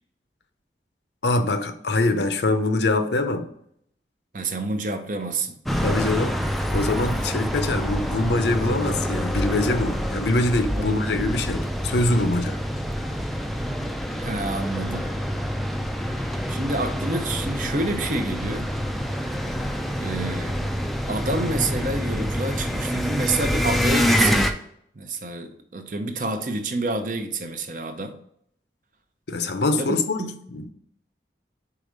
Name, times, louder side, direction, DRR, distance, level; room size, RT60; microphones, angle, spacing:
voice 1, 1.2-3.5 5.7-6.4 6.7-12.6 29.3-30.2 30.5-30.7, left 2 dB, 75° left, 0.6 m, -24 dB
voice 2, 4.3-5.6 10.7-11.1 14.1-15.1 16.2-18.7 20.0-20.6 21.1-24.5 24.9-28.2 29.8-30.3, right 2 dB, 45° right, 0.6 m, -28 dB
sound 1, 5.7-24.5, equal, ahead, 0.3 m, -26 dB
4.8 x 4.3 x 5.1 m
head